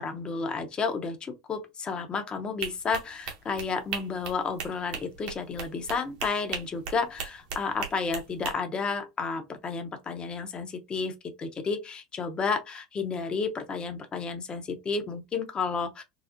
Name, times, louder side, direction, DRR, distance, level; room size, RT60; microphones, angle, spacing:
voice 1, 0.0-16.0, left 4 dB, 30° left, 0.7 m, -31 dB
sound 1, 2.6-8.5, right 6 dB, 65° right, 1.1 m, -37 dB
4.0 x 2.0 x 2.5 m
hypercardioid pair, 90°, 3 cm